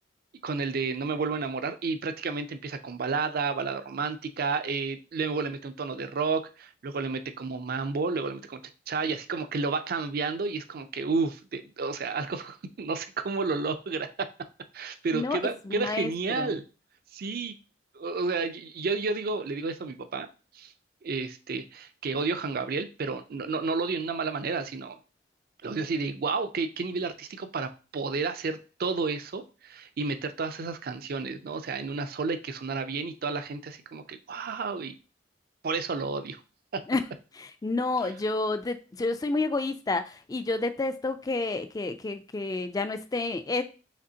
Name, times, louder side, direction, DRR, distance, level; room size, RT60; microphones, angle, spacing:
voice 1, 0.4-8.6 8.9-14.3 14.7-16.6 17.1-17.6 17.9-20.3 20.5-20.7 21.0-25.0 25.6-35.0 35.6-36.4 36.7-36.8 38.0-38.1, right 4 dB, 50° right, 9 dB, 0.4 m, -31 dB
voice 2, 15.7-16.5 36.9-37.0 37.4-43.6, left 3 dB, 20° left, 10 dB, 0.3 m, -30 dB
5.1 x 3.4 x 2.8 m, 0.34 s
head